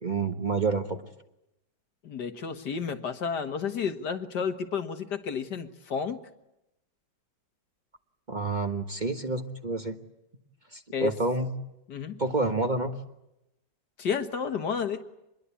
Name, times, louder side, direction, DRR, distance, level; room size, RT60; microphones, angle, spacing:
voice 1, 0.0-1.1 8.3-9.9 10.7-11.5 12.2-13.0, right 3 dB, 25° right, 6 dB, 1.4 m, -28 dB
voice 2, 2.0-6.2 10.9-11.1 11.9-12.2 14.0-15.0, left 6 dB, 65° left, 8 dB, 2.1 m, -31 dB
26.5 x 22.0 x 8.5 m, 0.87 s
omnidirectional pair, 2.0 m